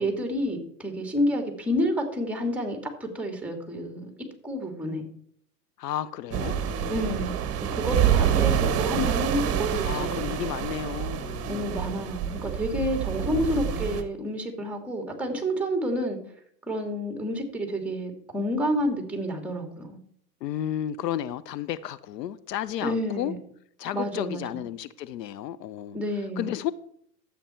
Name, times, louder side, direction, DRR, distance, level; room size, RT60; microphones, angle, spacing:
voice 1, 0.0-5.0 6.9-7.4 7.7-10.4 11.5-16.2 16.7-20.0 22.8-23.4 23.9-24.6 25.9-26.5, equal, 5° right, 2.5 m, -29 dB
voice 2, 5.8-7.3 9.8-12.1 13.2-14.1 20.4-23.3 23.8-26.0 26.4-26.7, left 11 dB, 80° left, 0.8 m, -33 dB
sound 1, 6.3-14.0, right 9 dB, 30° right, 1.4 m, -27 dB
12.5 x 8.4 x 4.4 m
hypercardioid pair, 120°, 48 cm